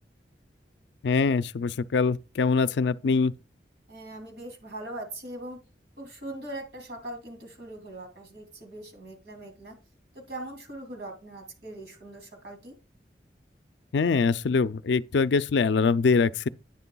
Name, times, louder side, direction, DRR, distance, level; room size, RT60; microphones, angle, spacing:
voice 1, 1.0-3.3 13.9-16.5, left 4 dB, 80° left, 0.4 m, -23 dB
voice 2, 3.9-5.6 6.0-9.7 10.3-12.7, right 1 dB, 65° right, 2.7 m, -41 dB
11.0 x 9.5 x 2.3 m
head